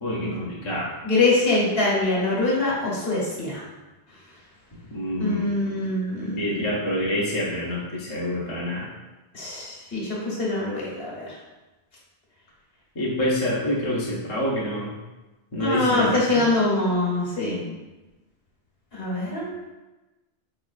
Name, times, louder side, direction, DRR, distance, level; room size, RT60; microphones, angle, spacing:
voice 1, 0.0-0.9 4.9-5.9 6.2-8.9 13.0-15.0 15.5-16.2, equal, 30° left, -5 dB, 0.6 m, -27 dB
voice 2, 1.0-3.6 5.2-6.5 9.3-11.3 15.6-17.7 18.9-19.5, left 2 dB, 65° left, -5 dB, 1.2 m, -24 dB
4.1 x 2.9 x 2.4 m, 1.1 s
omnidirectional pair, 1.1 m